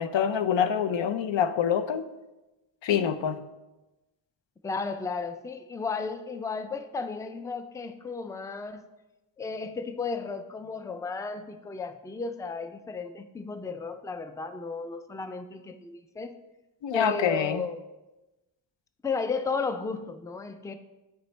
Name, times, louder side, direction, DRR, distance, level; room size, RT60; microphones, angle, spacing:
voice 1, 0.0-2.1 2.8-3.4 16.8-17.6, left 8 dB, 80° left, 11 dB, 0.5 m, -26 dB
voice 2, 4.6-8.8 9.4-16.3 16.9-17.8 19.0-20.7, left 4 dB, 10° left, 9 dB, 0.3 m, -34 dB
9.1 x 4.0 x 3.2 m, 1.0 s
cardioid pair, 55°, 44 cm